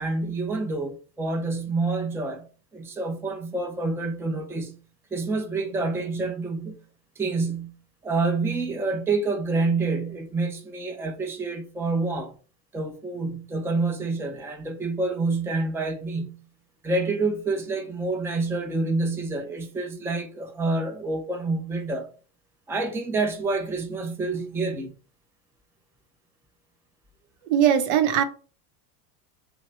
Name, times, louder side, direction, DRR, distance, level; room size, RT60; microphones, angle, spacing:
voice 1, 0.0-2.5 2.7-4.8 5.1-6.8 7.2-7.7 8.0-12.3 12.7-16.4 16.8-22.1 22.7-24.9, right 3 dB, 5° right, 0.6 m, -27 dB
voice 2, 27.5-28.2, right 9 dB, 60° right, 0.9 m, -20 dB
3.1 x 2.8 x 4.3 m
hypercardioid pair, 95°, 47 cm